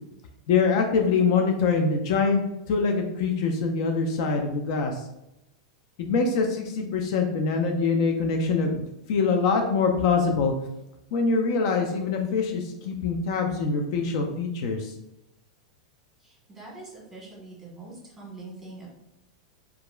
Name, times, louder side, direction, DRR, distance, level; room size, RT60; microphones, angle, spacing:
voice 1, 0.5-2.4 2.7-5.0 6.0-10.5 11.1-14.9, left 4 dB, 60° left, 3 dB, 0.4 m, -24 dB
voice 2, 16.2-18.9, right 2 dB, 5° right, -5 dB, 1.2 m, -44 dB
2.8 x 2.3 x 2.2 m, 0.88 s
hypercardioid pair, 120°, 3 cm